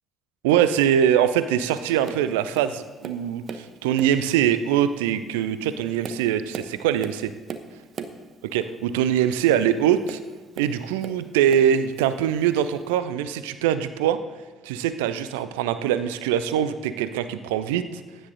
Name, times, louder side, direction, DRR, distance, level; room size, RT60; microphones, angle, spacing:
voice 1, 0.4-7.3 8.5-10.2 10.6-14.2 14.6-18.0, right 10 dB, 70° right, 13 dB, 0.5 m, -23 dB
Tap, 2.0-2.3 2.5-3.7 4.0-4.3 5.0-5.1 5.7-8.2 10.0-11.2 11.5-12.2 13.0-13.1, right 6 dB, 50° right, 0.9 m, -38 dB
15.5 x 10.0 x 3.9 m, 1.3 s
figure-of-eight pair, 45°, 0 cm